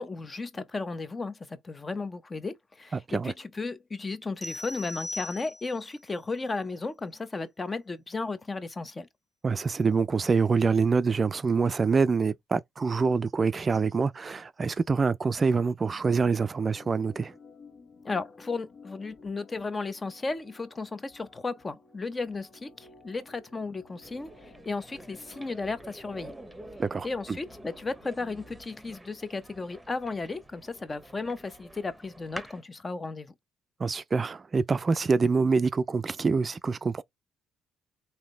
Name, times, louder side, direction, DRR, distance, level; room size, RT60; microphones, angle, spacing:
voice 1, 0.0-9.1 18.0-26.3 27.0-33.3, left 3 dB, 30° left, 0.7 m, -34 dB
voice 2, 2.9-3.3 9.4-17.3 26.8-27.4 33.8-37.0, right 4 dB, 35° right, 0.4 m, -26 dB
sound 1, 4.4-5.9, left 2 dB, 5° left, 1.3 m, -39 dB
Organ, 16.5-28.7, left 3 dB, 60° left, 1.8 m, -55 dB
sound 2, 24.0-32.6, right 1 dB, 10° right, 0.9 m, -48 dB
3.7 x 2.7 x 3.2 m
supercardioid pair, 55°, 0 cm